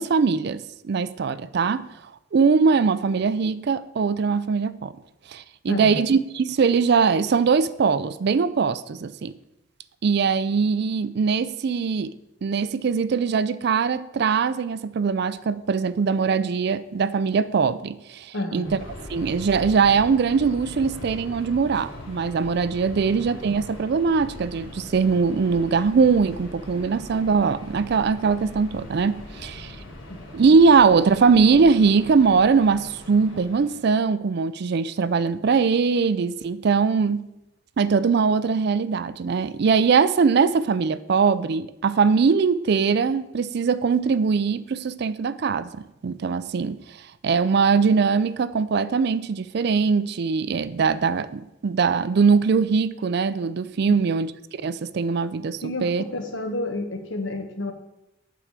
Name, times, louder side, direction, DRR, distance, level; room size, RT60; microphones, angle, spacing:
voice 1, 0.0-1.9 2.3-4.9 5.3-9.3 10.0-12.1 12.4-18.7 19.1-29.7 30.3-37.3 37.8-46.8 47.2-56.0, right 5 dB, 55° right, 0.4 m, -21 dB
voice 2, 5.7-6.0 18.3-18.7 22.9-23.0 30.1-30.3 53.9-54.0 55.6-57.7, left 2 dB, 65° left, 1.2 m, -30 dB
Subway metro underground, 18.6-34.0, left 1 dB, 80° left, 2.4 m, -40 dB
8.2 x 4.8 x 7.3 m
head